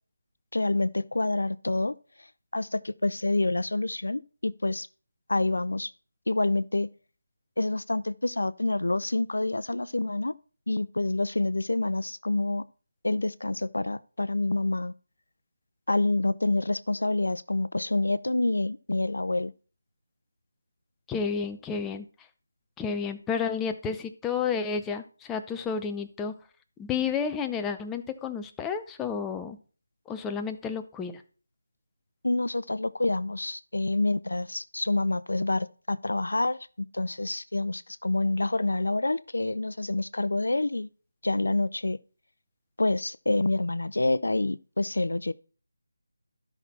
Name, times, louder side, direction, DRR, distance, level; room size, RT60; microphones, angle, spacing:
voice 1, 0.5-1.9 2.5-4.9 5.3-5.9 6.3-6.9 7.6-10.3 10.7-12.7 13.0-14.9 15.9-19.5 32.2-40.9 41.2-42.0 42.8-45.3, left 2 dB, 80° left, 0.6 m, -27 dB
voice 2, 21.1-22.1 22.8-26.4 26.8-29.6 30.1-31.2, left 6 dB, 5° left, 0.6 m, -31 dB
12.0 x 5.9 x 4.2 m
figure-of-eight pair, 165°, 0 cm